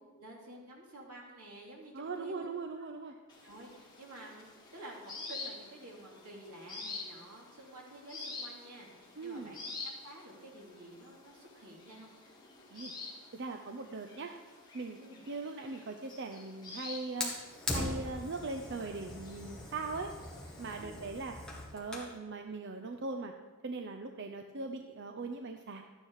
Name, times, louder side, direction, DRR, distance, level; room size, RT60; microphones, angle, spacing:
voice 1, 0.0-2.5 2.8-2.9 3.4-12.1 15.0-15.2 20.8-21.1, right 1 dB, 85° right, -2 dB, 2.9 m, -51 dB
voice 2, 1.9-3.1 9.2-9.5 12.7-12.9 13.3-14.3 14.7-15.0 15.3-17.3 17.7-20.1 20.6-21.4 21.7-23.3 23.6-25.8, right 3 dB, 50° right, 5 dB, 0.6 m, -40 dB
sound 1, 3.3-20.8, left 3 dB, 20° left, 2.0 m, -49 dB
Fire, 17.2-22.2, left 2 dB, 5° left, 1.7 m, -40 dB
13.0 x 9.7 x 4.7 m, 1.3 s
head